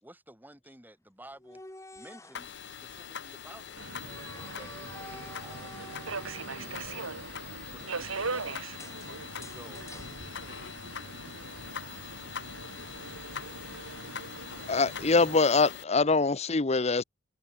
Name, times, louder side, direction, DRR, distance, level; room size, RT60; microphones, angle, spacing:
voice 1, 0.0-1.6 1.9-3.8 4.3-7.2 7.7-8.7 9.5-9.9, right 1 dB, 10° right, 3.8 m, -53 dB
sound 1, 1.3-2.5 4.1-7.0 8.8-11.0, left 2 dB, 15° left, 1.7 m, -49 dB
sound 2, 2.3-15.8, left 7 dB, 55° left, 1.2 m, -43 dB
Subway metro underground, 3.8-15.4, right 3 dB, 90° right, 3.3 m, -41 dB
voice 2, 6.7-8.4 9.0-12.8 13.5-15.1, right 2 dB, 65° right, 6.5 m, -56 dB
voice 3, 14.7-17.0, left 4 dB, 30° left, 0.8 m, -24 dB
head